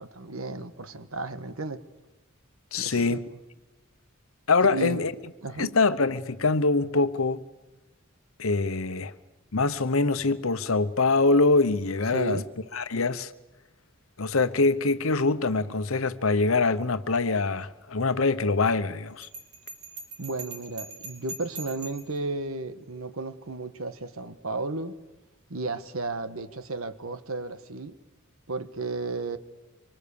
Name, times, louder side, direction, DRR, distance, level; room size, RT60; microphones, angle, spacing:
voice 1, 0.0-1.8 2.8-3.2 4.7-5.0 5.4-5.8 12.1-12.5 20.2-25.0 25.5-28.0 28.5-29.4, right 3 dB, 85° right, 1.4 m, -34 dB
voice 2, 2.7-3.2 4.5-5.1 5.6-7.4 8.4-9.1 9.5-12.4 12.7-13.3 14.2-19.3, left 3 dB, 80° left, 1.0 m, -24 dB
Bell, 19.2-22.2, right 3 dB, 55° right, 3.6 m, -42 dB
25.5 x 24.5 x 7.0 m
head